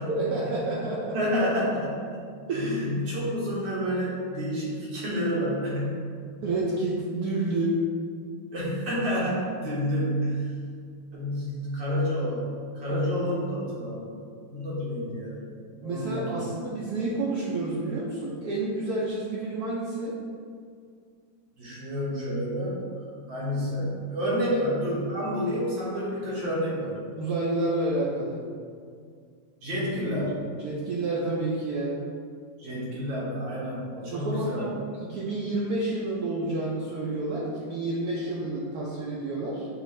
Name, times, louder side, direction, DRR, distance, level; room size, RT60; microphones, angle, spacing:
voice 1, 0.1-1.2 2.5-2.7 6.4-7.8 12.9-13.3 15.8-20.2 24.5-24.6 27.2-28.4 30.6-32.0 34.1-39.7, right 2 dB, 70° right, -5 dB, 0.9 m, -29 dB
voice 2, 1.1-2.2 2.5-6.2 8.5-10.6 11.1-15.4 15.8-16.5 21.6-22.8 23.3-27.0 29.6-30.5 32.6-34.7, equal, 85° right, -7 dB, 2.0 m, -29 dB
6.1 x 2.5 x 3.1 m, 2.2 s
omnidirectional pair, 2.0 m